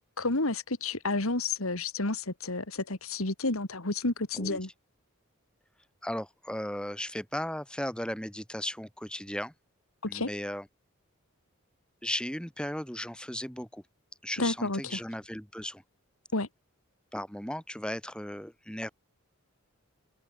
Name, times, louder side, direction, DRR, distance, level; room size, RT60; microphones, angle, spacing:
voice 1, 0.2-4.7 10.0-10.3 14.4-15.0 16.3-16.5, left 2 dB, 80° left, 2.6 m, -30 dB
voice 2, 6.0-9.5 10.1-10.7 12.0-13.8 14.2-15.8 17.1-18.9, left 1 dB, 5° left, 2.6 m, -36 dB
head